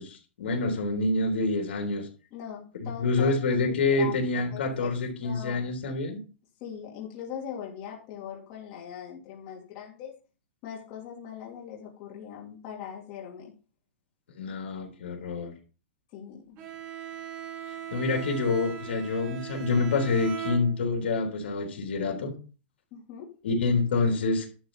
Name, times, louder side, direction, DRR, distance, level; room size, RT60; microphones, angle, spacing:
voice 1, 0.0-2.1 2.8-6.2 14.4-15.5 17.9-22.3 23.4-24.5, left 3 dB, 75° left, 2 dB, 3.4 m, -27 dB
voice 2, 2.3-3.4 3.7-4.9 5.2-5.6 6.6-10.1 10.6-13.5 16.1-16.6 22.9-23.3, left 8 dB, 30° left, -3 dB, 2.7 m, -41 dB
Bowed string instrument, 16.6-21.2, right 10 dB, 25° right, 1.7 m, -39 dB
11.5 x 4.0 x 7.2 m, 0.36 s
supercardioid pair, 165°, 6 cm